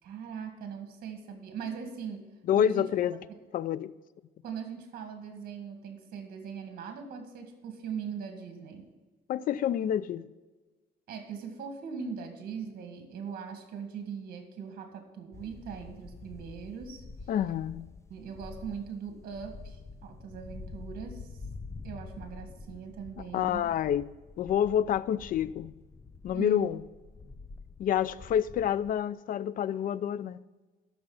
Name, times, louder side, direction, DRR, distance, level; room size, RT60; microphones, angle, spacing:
voice 1, 0.0-2.2 2.6-2.9 4.4-8.9 11.1-17.0 18.1-21.3 21.8-23.6 26.3-26.7, right 7 dB, 60° right, 2.0 m, -40 dB
voice 2, 2.5-3.2 3.5-3.9 9.3-10.2 17.3-17.9 23.3-24.0 24.4-25.7 26.2-26.8 27.8-30.4, left 10 dB, 55° left, 0.5 m, -28 dB
sound 1, 15.3-29.0, left 3 dB, 15° left, 0.7 m, -47 dB
12.5 x 6.3 x 5.6 m
cardioid pair, 110°, 17 cm